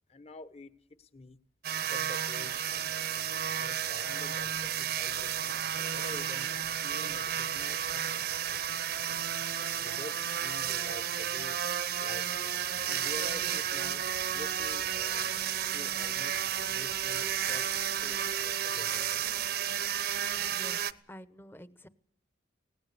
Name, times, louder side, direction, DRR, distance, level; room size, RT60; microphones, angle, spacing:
voice 1, 0.1-0.7 1.0-1.4 1.9-2.8 3.6-5.6 5.9-8.9 9.8-11.6 12.0-14.0 14.3-15.3 15.7-19.2, left 2 dB, 35° left, 12 dB, 1.1 m, -48 dB
sound 1, 1.6-20.9, right 9 dB, 55° right, 0.8 m, -32 dB
voice 2, 20.3-21.9, equal, 10° left, 13 dB, 0.9 m, -49 dB
24.0 x 18.5 x 6.9 m, 0.64 s
head